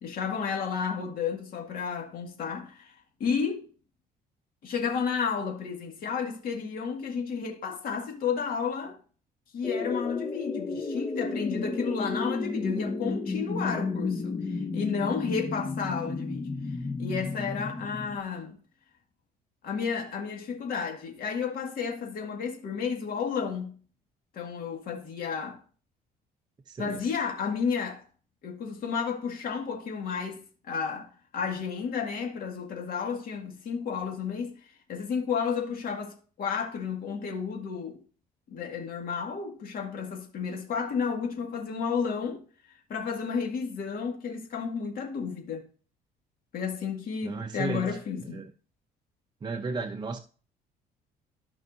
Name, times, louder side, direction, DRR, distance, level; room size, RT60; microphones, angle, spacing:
voice 1, 0.0-3.7 4.6-9.0 9.5-18.5 19.6-23.7 24.3-25.6 26.8-28.0 28.4-38.0 38.5-42.4 42.9-45.7 46.5-48.4, left 6 dB, 60° left, 2.1 m, -32 dB
sound 1, 9.6-18.2, left 3 dB, 20° left, 0.7 m, -32 dB
voice 2, 26.7-27.0 47.2-48.0 48.3-48.4 49.4-50.2, right 4 dB, 25° right, 0.7 m, -34 dB
13.5 x 5.4 x 2.7 m
cardioid pair, 110°, 17 cm